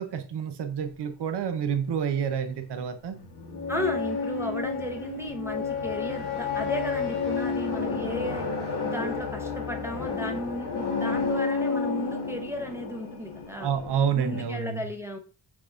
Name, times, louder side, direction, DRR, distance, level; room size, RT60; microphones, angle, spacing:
voice 1, 0.0-3.2 13.5-14.9, right 7 dB, 65° right, 0.7 m, -29 dB
sound 1, 2.8-14.4, left 4 dB, 65° left, 1.2 m, -31 dB
voice 2, 3.7-8.5 8.8-13.7 14.2-15.2, left 1 dB, 5° right, 0.6 m, -34 dB
6.2 x 3.4 x 2.4 m
wide cardioid pair, 115°, 44 cm